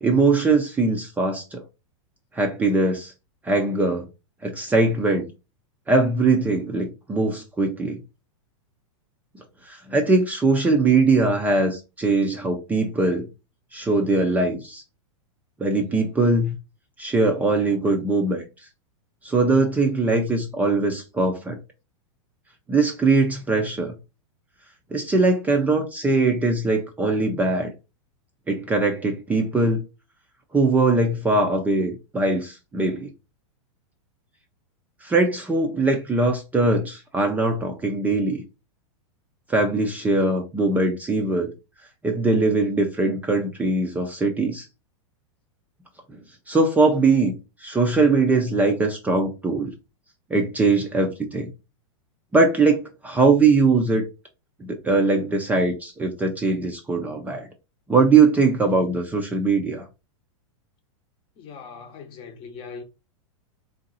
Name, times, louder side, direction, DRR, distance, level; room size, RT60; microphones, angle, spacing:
voice 1, 0.0-1.6 2.3-3.1 3.4-4.1 4.4-5.2 5.9-8.0 9.7-13.3 13.7-14.8 15.6-16.5 17.0-18.4 19.2-21.6 22.7-23.9 24.9-27.7 28.5-29.8 30.5-33.1 35.0-38.4 39.5-41.5 42.0-44.7 46.1-46.2 46.5-49.7 50.3-51.5 52.3-54.0 54.6-57.5 57.9-59.9, right 3 dB, 10° right, 0.5 m, -21 dB
voice 2, 61.4-62.8, left 5 dB, 30° left, 0.8 m, -40 dB
3.8 x 2.7 x 3.9 m
supercardioid pair, 140°, 17 cm